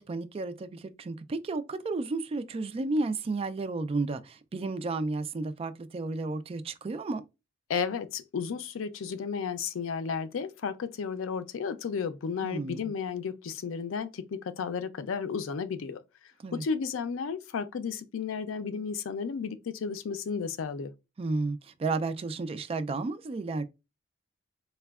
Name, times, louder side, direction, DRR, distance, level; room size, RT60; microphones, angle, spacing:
voice 1, 0.0-7.2 12.4-12.8 16.4-16.6 21.2-23.6, right 3 dB, 30° right, 0.3 m, -32 dB
voice 2, 7.7-16.0 16.5-20.9, left 6 dB, 85° left, 0.4 m, -33 dB
4.1 x 2.2 x 2.3 m
head